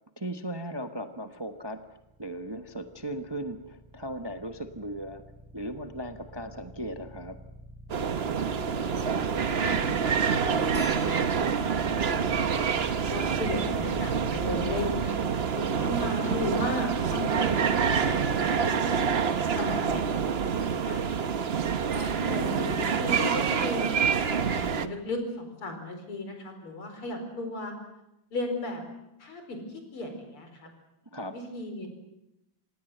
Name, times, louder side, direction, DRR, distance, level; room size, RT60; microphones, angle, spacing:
voice 1, 0.2-1.8 2.2-5.2 5.5-7.4 13.6-14.1 22.2-22.9 31.1-31.4, right 1 dB, 15° right, 7 dB, 0.8 m, -37 dB
sound 1, 1.8-15.1, right 1 dB, ahead, 3.3 m, -43 dB
sound 2, 7.9-24.9, right 6 dB, 50° right, 0.7 m, -27 dB
voice 2, 8.7-10.1 10.4-11.3 11.6-12.7 13.1-19.0 19.5-21.3 21.9-23.9 24.3-27.7 28.3-28.8 29.2-29.6 29.9-30.7 31.3-31.9, left 1 dB, 80° left, 5 dB, 5.6 m, -36 dB
sound 3, 10.7-15.4 16.1-16.2 16.4-16.6 17.8-18.1 19.5-19.6 19.9-20.0, left 2 dB, 50° left, 4.4 m, -48 dB
27.0 x 19.0 x 8.0 m, 0.88 s
omnidirectional pair, 2.4 m